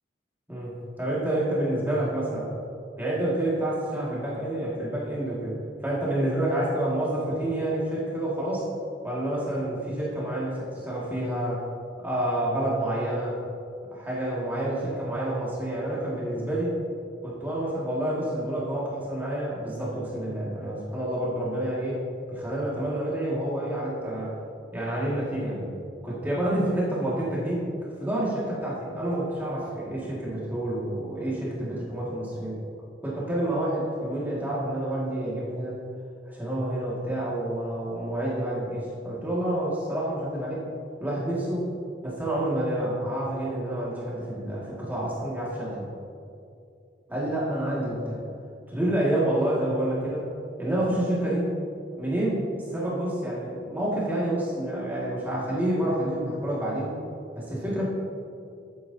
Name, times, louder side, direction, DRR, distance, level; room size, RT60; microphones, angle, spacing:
voice 1, 0.5-2.5 3.0-5.6 5.8-8.7 9.0-11.6 12.0-13.4 13.9-16.8 17.2-22.0 22.3-24.3 24.7-25.7 26.0-27.7 28.0-32.6 33.0-35.8 36.3-40.6 41.0-41.7 42.0-45.9 47.1-48.2 48.7-50.3 50.6-51.5 52.0-57.0 57.3-57.9, right 1 dB, 10° right, -7 dB, 2.1 m, -28 dB
11.5 x 9.2 x 2.8 m, 2.5 s
head